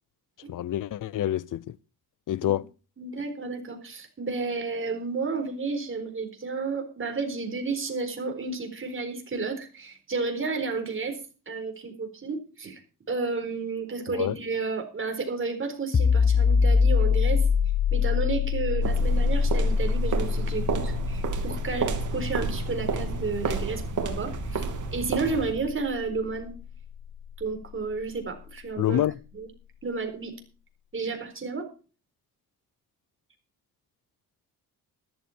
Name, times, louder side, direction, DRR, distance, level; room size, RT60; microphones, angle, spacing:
voice 1, 0.5-1.8 2.3-2.7 14.1-14.4 28.8-29.2, left 12 dB, 60° left, 0.7 m, -27 dB
voice 2, 3.0-11.2 11.5-12.8 13.1-17.4 17.9-26.5 27.4-29.0 29.4-29.5 29.8-30.3 30.9-31.7, right 4 dB, 35° right, 4.3 m, -32 dB
sound 1, 15.9-27.4, left 5 dB, 30° left, 0.8 m, -25 dB
sound 2, 18.8-25.6, right 5 dB, 60° right, 2.8 m, -31 dB
13.5 x 12.5 x 4.4 m
cardioid pair, 110°, 35 cm